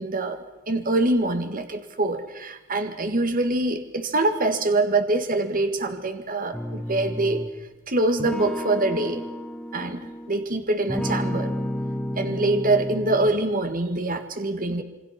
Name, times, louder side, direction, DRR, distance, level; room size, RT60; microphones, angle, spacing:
voice 1, 0.0-7.4 7.9-9.2 9.7-11.5 12.2-14.8, right 2 dB, 40° right, 8 dB, 1.8 m, -24 dB
sound 1, 6.5-7.6 8.2-10.5 10.9-13.5, equal, 5° left, 1.4 m, -31 dB
27.5 x 24.0 x 5.9 m, 1.0 s
head